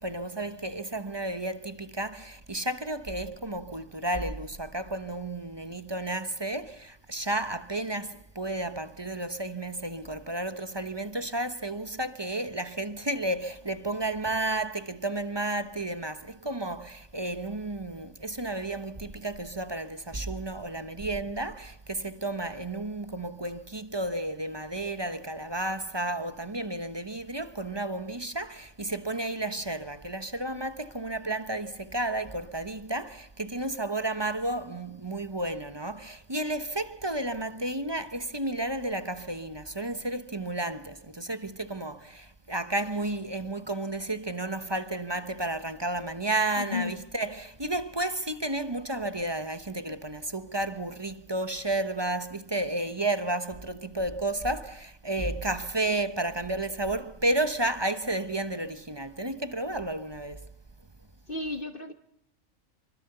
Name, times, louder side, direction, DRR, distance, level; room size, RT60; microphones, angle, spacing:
voice 1, 0.0-60.5, right 2 dB, 20° right, 1.0 m, -32 dB
voice 2, 46.6-47.0 61.3-61.9, left 4 dB, 40° left, 1.5 m, -33 dB
26.5 x 24.5 x 6.8 m
omnidirectional pair, 1.4 m